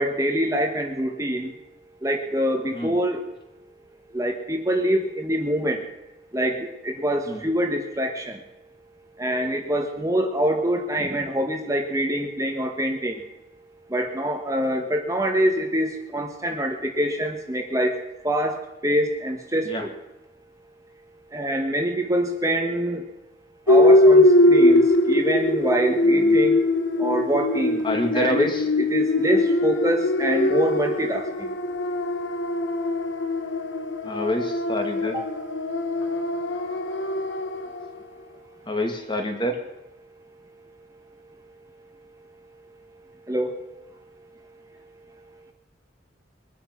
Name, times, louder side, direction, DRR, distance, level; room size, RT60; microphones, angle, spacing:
voice 1, 0.0-1.5 2.0-3.2 4.1-5.8 6.3-8.4 9.2-13.2 13.9-17.9 18.2-19.9 21.3-23.0 23.7-26.6 27.0-27.8 28.1-28.5 28.8-31.5 35.1-35.2 43.3-43.5, right 1 dB, 15° right, 3 dB, 1.4 m, -25 dB
sound 1, 23.7-37.9, left 1 dB, 85° left, 1.3 m, -21 dB
voice 2, 26.0-26.4 27.8-28.6 34.0-35.2 38.7-39.6, left 1 dB, 25° left, 4 dB, 2.2 m, -27 dB
22.5 x 10.0 x 6.1 m, 0.98 s
head